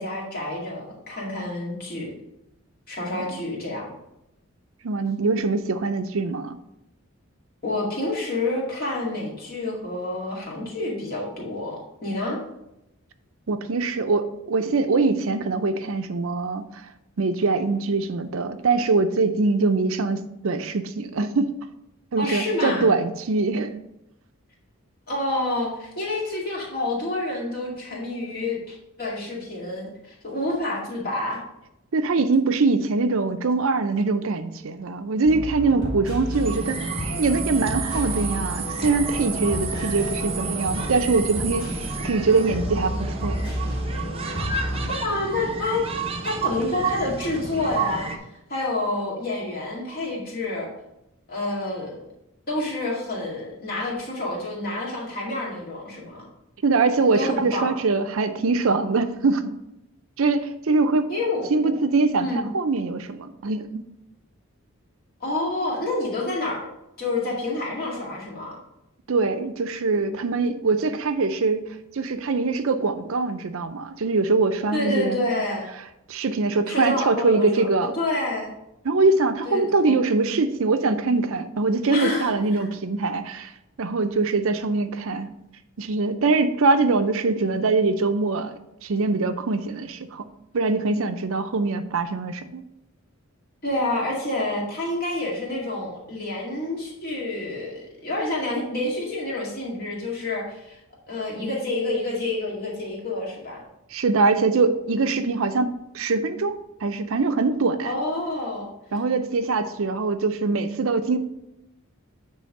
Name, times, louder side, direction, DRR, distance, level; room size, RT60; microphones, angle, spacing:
voice 1, 0.0-2.1 2.9-3.9 7.6-12.4 22.2-22.9 25.1-31.4 44.9-45.8 46.2-48.1 48.5-50.7 51.3-52.1 52.5-56.2 57.0-57.8 61.1-61.7 62.2-62.5 65.2-66.6 67.0-68.6 74.7-75.7 76.7-77.7 77.9-78.5 79.4-79.9 81.9-82.7 93.6-100.8 101.1-103.6 107.8-108.7, left 2 dB, 40° left, -3 dB, 2.1 m, -28 dB
voice 2, 4.8-6.6 13.5-16.6 17.2-21.5 22.1-23.7 31.9-36.9 37.2-43.4 56.6-59.5 60.2-61.1 61.5-62.3 62.5-63.8 69.1-71.6 71.9-75.2 76.1-77.9 78.8-83.5 83.8-85.3 85.8-90.2 90.5-92.6 103.9-107.9 108.9-111.2, right 3 dB, 65° right, 9 dB, 0.5 m, -23 dB
sound 1, 35.2-44.9, equal, 20° left, 3.1 m, -31 dB
sound 2, 36.3-48.2, right 5 dB, 25° right, 0.7 m, -31 dB
9.3 x 3.4 x 5.3 m, 0.86 s
head